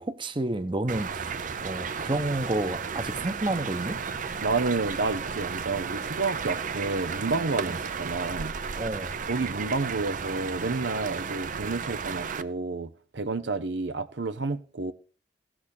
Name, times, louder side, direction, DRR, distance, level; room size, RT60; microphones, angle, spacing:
voice 1, 0.0-1.3 1.6-4.0 7.7-7.8 8.8-9.2, right 2 dB, 30° right, 1.0 m, -30 dB
sound 1, 0.9-12.4, right 6 dB, 50° right, 0.6 m, -34 dB
voice 2, 4.4-8.6 9.3-14.9, right 3 dB, 85° right, 0.8 m, -30 dB
16.0 x 6.3 x 6.5 m
head